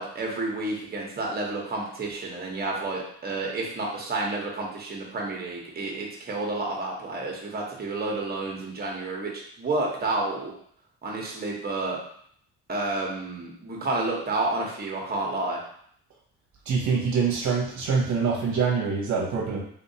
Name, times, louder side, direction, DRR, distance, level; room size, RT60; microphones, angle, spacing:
voice 1, 0.0-9.3 9.6-10.5 11.0-12.0 12.7-15.6, right 2 dB, 30° right, -1 dB, 1.0 m, -30 dB
voice 2, 16.7-19.6, right 5 dB, 70° right, -3 dB, 0.8 m, -25 dB
3.6 x 2.7 x 2.7 m, 0.64 s
cardioid pair, 90°, 30 cm